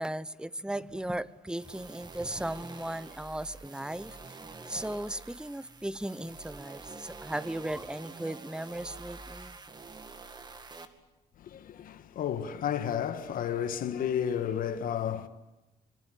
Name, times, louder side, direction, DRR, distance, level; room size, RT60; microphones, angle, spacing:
voice 1, 0.0-4.2 4.7-9.6, right 1 dB, 5° right, 0.9 m, -36 dB
sound 1, 1.5-10.9, right 3 dB, 30° right, 2.2 m, -47 dB
voice 2, 11.4-15.3, left 9 dB, 70° left, 1.7 m, -32 dB
24.5 x 24.5 x 9.2 m
cardioid pair, 125°, 15 cm